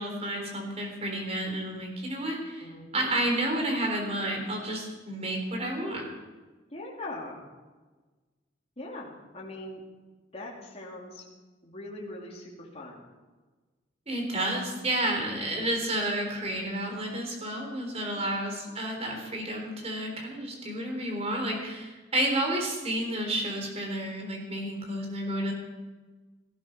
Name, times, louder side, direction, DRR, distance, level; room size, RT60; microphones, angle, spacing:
voice 1, 0.0-6.1 14.1-25.5, right 1 dB, 30° right, 2 dB, 3.9 m, -31 dB
voice 2, 2.6-3.1 6.7-7.5 8.8-9.8 10.3-11.2 11.6-13.0 18.1-18.3, left 1 dB, 30° left, -3 dB, 3.0 m, -41 dB
18.0 x 15.0 x 5.3 m, 1.3 s
head